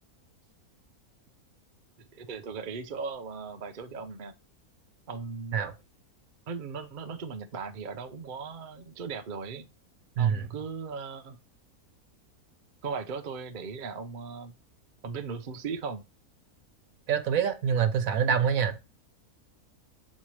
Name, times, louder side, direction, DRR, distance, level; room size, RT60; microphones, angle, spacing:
voice 1, 2.1-4.3 5.1-5.6 6.5-9.7 10.2-11.4 12.8-14.5 15.0-16.0, right 5 dB, 45° right, 0.7 m, -38 dB
voice 2, 10.2-10.5 17.1-18.8, right 7 dB, 65° right, 1.2 m, -25 dB
7.5 x 4.5 x 3.2 m
omnidirectional pair, 1.6 m